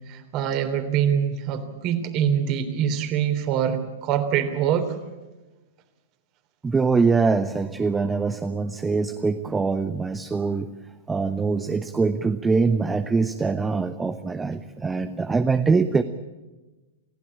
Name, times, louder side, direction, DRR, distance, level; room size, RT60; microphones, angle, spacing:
voice 1, 0.1-4.9, right 8 dB, 35° right, 9 dB, 3.3 m, -24 dB
voice 2, 6.6-10.8 11.1-16.0, right 4 dB, 10° right, 9 dB, 1.0 m, -23 dB
29.5 x 16.0 x 8.8 m, 1.2 s
figure-of-eight pair, 105°, 0 cm